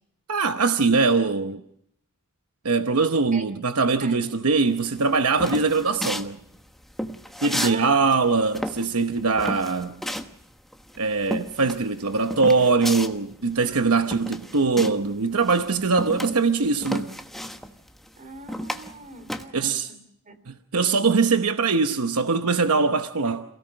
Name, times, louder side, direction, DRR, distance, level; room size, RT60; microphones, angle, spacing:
voice 1, 0.3-1.6 2.6-6.4 7.4-10.0 11.0-17.1 19.5-19.9 20.5-23.4, right 4 dB, 75° right, 1.0 m, -22 dB
sound 1, 4.8-7.8 8.1-15.1 15.4-19.5, equal, ahead, 1.2 m, -32 dB
voice 2, 7.6-7.9 18.2-20.0 20.3-20.4 21.3-21.4, right 4 dB, 35° right, 2.8 m, -40 dB
28.5 x 17.0 x 6.5 m
head